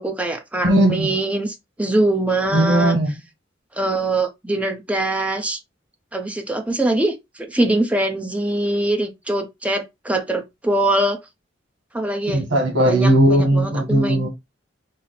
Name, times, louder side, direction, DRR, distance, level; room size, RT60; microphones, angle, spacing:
voice 1, 0.0-3.0 3.8-5.6 6.1-11.2 11.9-12.4 12.9-14.3, right 1 dB, 5° right, 0.7 m, -23 dB
voice 2, 0.6-1.1 2.5-3.1 12.3-14.3, right 1 dB, 90° right, 1.3 m, -17 dB
5.6 x 2.1 x 4.1 m
head